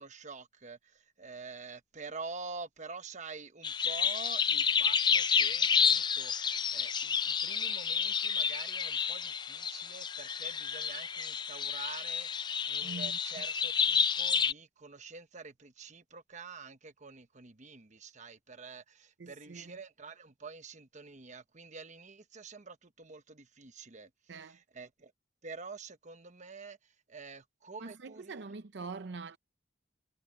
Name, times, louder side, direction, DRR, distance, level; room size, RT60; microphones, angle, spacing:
voice 1, 0.0-25.1 25.4-28.3, right 4 dB, 40° right, 1.1 m, -47 dB
sound 1, 3.6-14.5, left 6 dB, 25° left, 0.4 m, -30 dB
voice 2, 12.8-13.4 19.2-19.8 24.3-24.6 27.8-29.4, right 4 dB, 65° right, 0.6 m, -44 dB
head